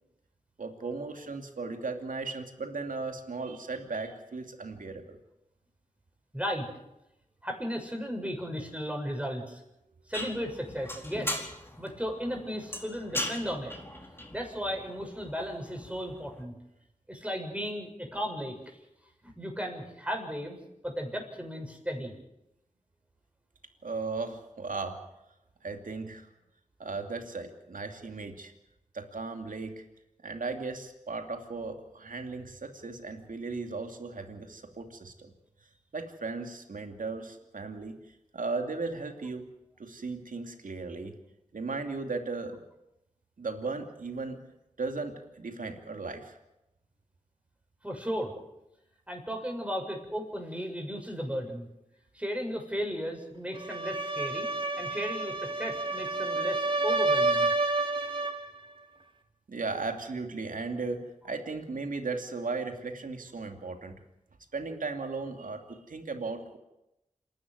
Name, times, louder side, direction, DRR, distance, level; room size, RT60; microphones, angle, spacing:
voice 1, 0.6-5.2 23.8-25.0 25.6-26.3 26.8-28.5 28.9-29.8 30.2-35.3 35.9-38.0 38.3-39.5 39.8-41.1 41.5-42.6 43.4-44.4 44.8-46.4 57.8-58.2 59.5-64.0 64.5-66.6, right 3 dB, 85° right, 5 dB, 2.6 m, -36 dB
voice 2, 6.3-6.7 7.4-9.6 10.1-11.5 11.8-13.7 14.3-16.5 17.1-18.8 19.2-20.6 20.8-22.1 47.8-48.3 49.1-51.7 52.1-54.5 54.8-57.5, equal, 10° right, 2 dB, 7.3 m, -35 dB
sound 1, 10.1-16.4, left 1 dB, 15° left, 4.5 m, -39 dB
sound 2, 53.5-58.5, right 2 dB, 40° right, 2.4 m, -29 dB
27.5 x 12.5 x 9.7 m, 0.89 s
cardioid pair, 45°, 13 cm